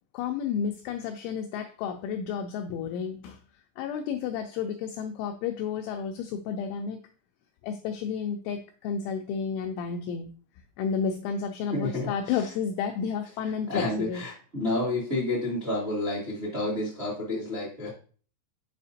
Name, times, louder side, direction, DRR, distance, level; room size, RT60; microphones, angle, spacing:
voice 1, 0.1-7.0 7.6-10.3 10.8-14.2, left 6 dB, 85° left, 5 dB, 2.7 m, -31 dB
voice 2, 11.7-12.4 13.7-17.9, left 2 dB, 30° right, -6 dB, 1.1 m, -30 dB
7.3 x 5.0 x 2.8 m, 0.40 s
omnidirectional pair, 5.9 m